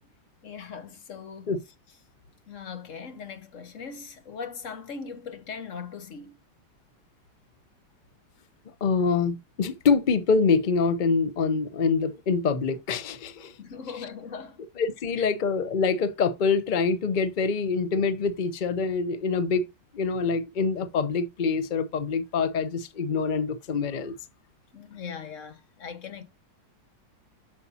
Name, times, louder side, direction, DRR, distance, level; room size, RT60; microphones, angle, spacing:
voice 1, 0.4-1.6 2.5-6.4 13.6-14.6 15.2-15.3 24.7-26.2, left 6 dB, 50° left, 1.3 m, -39 dB
voice 2, 8.8-13.5 14.8-19.7 19.9-24.1, left 5 dB, 85° left, 0.4 m, -25 dB
8.1 x 6.7 x 2.7 m
omnidirectional pair, 2.0 m